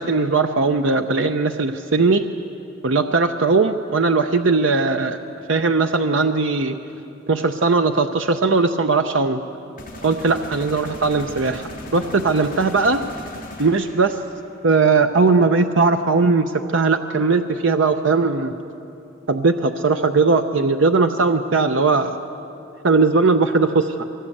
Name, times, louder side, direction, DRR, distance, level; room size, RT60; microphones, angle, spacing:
voice 1, 0.0-2.3 2.8-5.2 5.5-6.8 7.3-9.4 10.0-13.0 13.6-14.2 14.6-18.6 19.3-22.2 22.8-24.0, right 4 dB, 65° right, 7 dB, 0.7 m, -19 dB
sound 1, 9.8-14.5, left 1 dB, 40° left, 3.3 m, -38 dB
23.0 x 18.0 x 8.5 m, 2.8 s
head